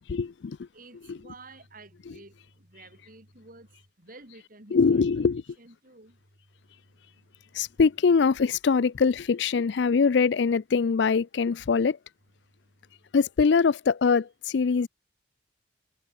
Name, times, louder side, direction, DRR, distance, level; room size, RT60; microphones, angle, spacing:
voice 1, 0.1-0.6 1.1-1.2 4.7-5.4 7.5-12.0 13.1-14.9, left 5 dB, 65° left, 0.4 m, -23 dB
voice 2, 0.7-3.7 4.0-5.0 5.6-6.2, right 2 dB, 45° right, 5.8 m, -50 dB
head